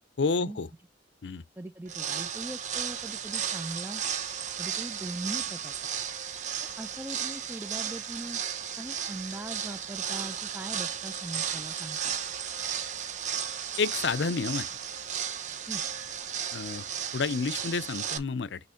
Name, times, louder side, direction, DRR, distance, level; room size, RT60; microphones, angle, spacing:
voice 1, 0.2-0.7 1.2-1.4 13.8-14.7 16.5-16.9 17.1-18.6, left 4 dB, 70° left, 0.5 m, -29 dB
voice 2, 1.6-4.0 4.6-5.8 6.8-8.4 8.8-12.2 15.7-15.8, right 1 dB, 10° right, 0.6 m, -40 dB
sound 1, 1.9-18.2, right 8 dB, 40° right, 1.0 m, -34 dB
6.2 x 3.1 x 5.7 m
head